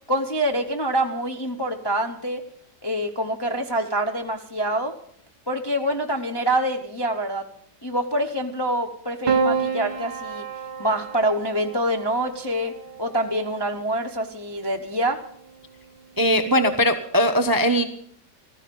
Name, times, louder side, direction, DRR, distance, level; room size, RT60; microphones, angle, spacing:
voice 1, 0.1-2.5 2.8-4.9 5.5-7.5 7.8-10.4 10.8-15.2, right 1 dB, 20° left, 3 dB, 0.6 m, -26 dB
Piano, 9.3-13.7 14.9-15.6, right 5 dB, 35° right, 1.4 m, -29 dB
voice 2, 16.2-17.8, equal, 20° right, 8 dB, 0.6 m, -20 dB
15.0 x 14.0 x 5.3 m, 0.63 s
omnidirectional pair, 1.9 m